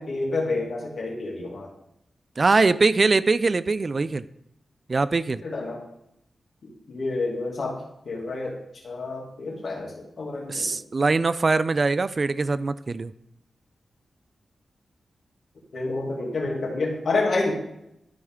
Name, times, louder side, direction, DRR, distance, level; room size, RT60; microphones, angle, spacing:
voice 1, 0.0-1.7 5.4-5.8 6.6-10.8 15.7-17.6, left 3 dB, 65° left, -2 dB, 2.4 m, -29 dB
voice 2, 2.4-4.2 4.9-5.4 10.5-13.1, right 3 dB, 45° right, 15 dB, 0.3 m, -22 dB
13.0 x 4.4 x 3.7 m, 0.80 s
cardioid pair, 70°, 0 cm